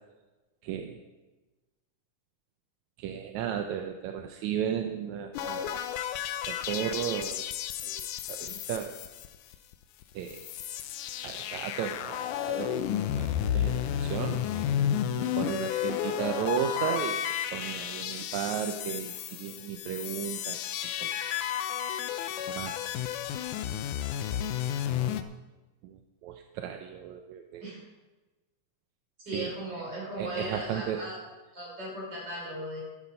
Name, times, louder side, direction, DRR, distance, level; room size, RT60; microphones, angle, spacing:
voice 1, 0.6-1.0 3.0-5.8 6.5-7.5 7.8-9.0 10.1-10.5 11.2-14.8 15.2-17.3 17.5-21.2 22.5-23.1 24.1-24.5 25.8-27.7 29.3-29.8 30.2-31.0, right 9 dB, 75° right, 5 dB, 1.8 m, -35 dB
sound 1, 5.3-9.7 10.0-10.1 10.3-25.2, left 10 dB, 80° left, 2.1 m, -32 dB
voice 2, 29.2-31.2 31.5-32.8, right 1 dB, 30° right, -4 dB, 5.9 m, -37 dB
12.5 x 10.5 x 5.5 m, 1.2 s
omnidirectional pair, 3.8 m